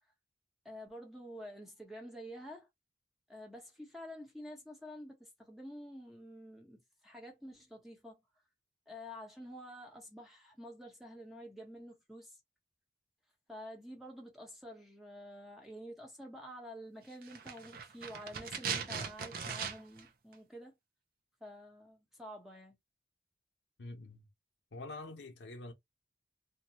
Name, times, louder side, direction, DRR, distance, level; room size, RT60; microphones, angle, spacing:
voice 1, 0.6-2.7 3.3-8.2 8.9-12.4 13.5-20.8 21.4-22.8, equal, ahead, 0.9 m, -49 dB
sound 1, 17.2-20.1 20.3-20.4, right 6 dB, 55° right, 0.5 m, -39 dB
voice 2, 23.8-24.3 24.7-25.7, left 2 dB, 85° left, 0.7 m, -46 dB
2.7 x 2.2 x 2.8 m
head